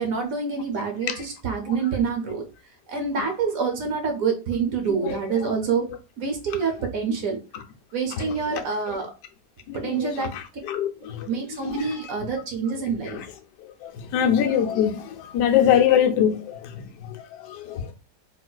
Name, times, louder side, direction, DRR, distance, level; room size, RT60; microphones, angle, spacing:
voice 1, 0.0-2.5 2.9-5.9 6.2-7.4 7.9-9.1 9.7-10.4 11.3-13.2, right 5 dB, 65° right, 1.0 m, -26 dB
voice 2, 5.0-5.5 8.2-8.6 8.9-9.0 9.7-10.4 10.7-11.3 11.6-12.0 13.0-13.3 13.6-17.9, left 9 dB, 85° left, 1.2 m, -24 dB
3.9 x 2.4 x 2.2 m
omnidirectional pair, 1.8 m